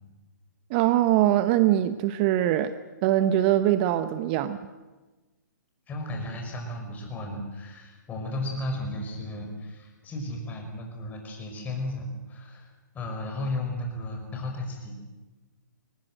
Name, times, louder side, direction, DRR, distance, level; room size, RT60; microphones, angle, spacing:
voice 1, 0.7-2.7 3.0-4.6, right 13 dB, 30° right, 12 dB, 0.8 m, -22 dB
voice 2, 5.9-14.9, left 1 dB, 15° left, 2 dB, 5.5 m, -34 dB
22.5 x 19.5 x 7.8 m, 1.2 s
hypercardioid pair, 140°, 10 cm